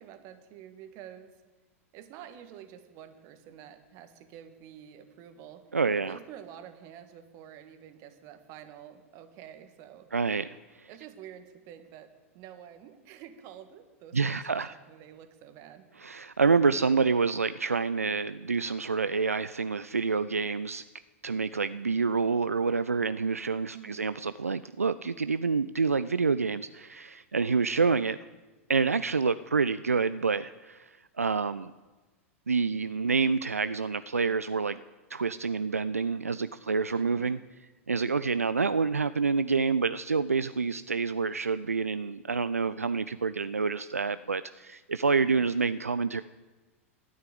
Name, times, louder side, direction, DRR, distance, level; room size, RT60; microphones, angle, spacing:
voice 1, 0.0-1.3 1.9-5.6 6.0-10.1 10.9-15.9 23.7-24.1 36.9-37.4 45.3-45.5, right 10 dB, 40° right, 8 dB, 1.6 m, -48 dB
voice 2, 5.7-6.2 10.1-10.9 14.1-14.7 16.0-20.8 21.2-28.2 28.7-31.7 32.5-34.8 35.1-37.4 37.9-46.2, right 4 dB, 80° right, 14 dB, 0.3 m, -28 dB
13.5 x 9.5 x 7.7 m, 1.2 s
figure-of-eight pair, 90°, 8 cm